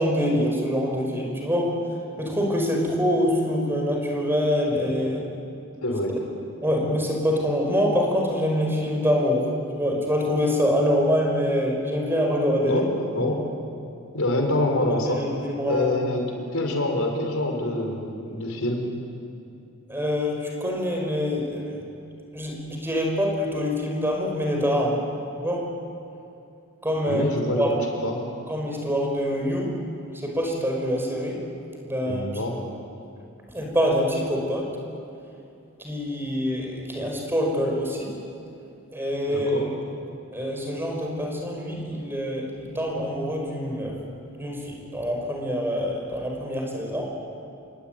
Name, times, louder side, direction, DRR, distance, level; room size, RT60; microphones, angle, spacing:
voice 1, 0.0-1.7 2.2-5.3 6.6-9.5 9.8-12.8 13.2-13.3 15.1-15.9 19.9-21.8 22.3-25.0 25.4-25.7 26.8-27.2 27.6-27.7 28.5-29.7 30.1-31.4 31.8-32.3 33.5-34.8 35.8-38.2 38.9-39.7 40.3-44.0 44.3-47.0, equal, 10° right, 0 dB, 5.4 m, -25 dB
voice 2, 5.8-6.2 12.6-13.4 14.1-15.2 15.7-16.3 16.5-18.8 27.1-27.6 28.0-28.2 32.0-32.6 39.3-39.7, left 1 dB, 75° left, 2 dB, 5.2 m, -26 dB
28.0 x 23.0 x 9.3 m, 2.6 s
head